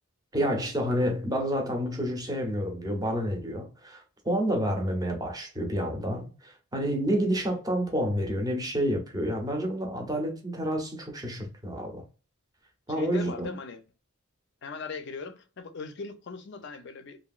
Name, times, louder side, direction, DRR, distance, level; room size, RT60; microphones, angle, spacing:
voice 1, 0.3-12.0 12.9-13.6, equal, 15° right, 0.7 m, -29 dB
voice 2, 12.9-13.8 14.6-17.2, left 4 dB, 55° left, 0.5 m, -39 dB
2.9 x 2.6 x 2.3 m
head